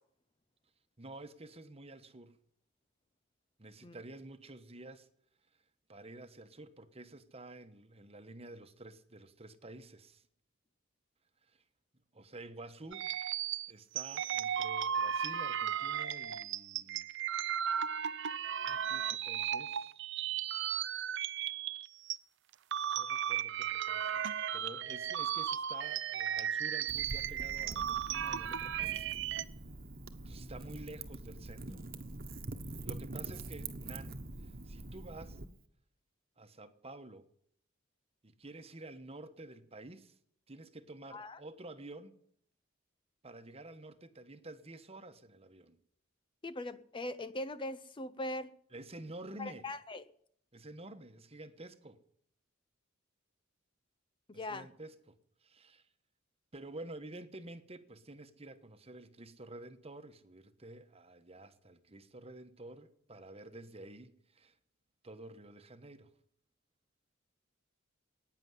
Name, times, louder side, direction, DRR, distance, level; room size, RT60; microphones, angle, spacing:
voice 1, 1.0-2.4 3.6-5.1 5.9-10.2 11.5-11.6 12.1-13.1 13.7-17.1 18.6-19.9 23.0-29.1 30.2-31.8 32.8-35.4 36.4-37.2 38.2-40.2 40.5-42.2 43.2-45.8 48.7-49.7 50.5-52.0 54.3-55.9 56.5-64.5 65.0-66.1, right 2 dB, 30° right, 1.2 m, -50 dB
sound 1, 12.9-22.2 22.5-29.4, right 9 dB, 60° right, 0.6 m, -35 dB
Wind / Fire, 26.9-35.5, right 2 dB, 45° right, 1.3 m, -45 dB
voice 2, 46.4-48.5 49.4-50.0 54.3-54.7, left 1 dB, 25° left, 0.6 m, -40 dB
15.0 x 9.8 x 9.7 m
head